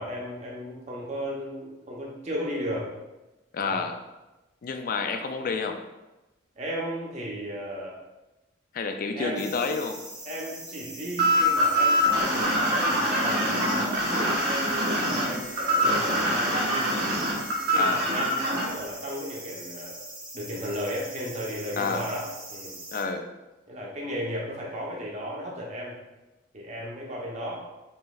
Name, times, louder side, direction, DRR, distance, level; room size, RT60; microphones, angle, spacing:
voice 1, 0.0-2.9 3.6-3.9 6.6-7.9 9.1-9.4 10.2-16.9 17.7-20.0 20.3-22.7 23.7-25.9 26.5-27.7, equal, 35° right, -3 dB, 0.9 m, -35 dB
voice 2, 3.5-4.0 4.6-5.8 8.7-10.0 17.7-18.1 21.8-22.1 22.9-23.3, left 4 dB, 45° left, 6 dB, 0.4 m, -29 dB
sound 1, 9.4-23.0, right 1 dB, 5° right, 0.7 m, -42 dB
sound 2, 11.2-18.6, right 1 dB, 55° right, 1.1 m, -24 dB
5.5 x 3.1 x 2.4 m, 1.0 s
head